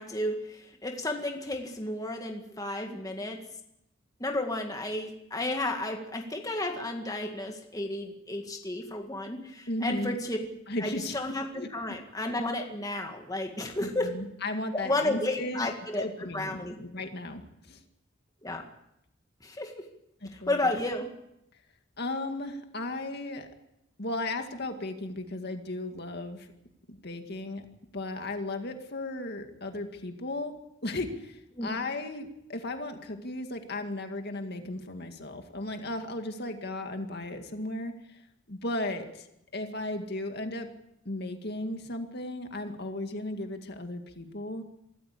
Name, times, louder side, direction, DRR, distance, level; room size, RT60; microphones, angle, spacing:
voice 1, 0.0-3.4 4.2-10.4 10.8-14.1 14.7-16.8 18.4-18.6 19.4-19.9 20.3-21.1 31.6-31.7, left 1 dB, 15° left, 3 dB, 2.0 m, -32 dB
voice 2, 9.7-10.2 10.7-11.2 11.5-11.7 13.8-15.7 15.9-17.4 17.7-17.8 20.2-20.6 22.0-23.5 24.0-26.5 27.0-27.7 27.9-30.5 30.8-37.9 38.5-39.3 39.5-40.7 41.1-44.6, left 2 dB, 50° left, 5 dB, 2.1 m, -35 dB
25.0 x 14.0 x 8.5 m, 0.83 s
head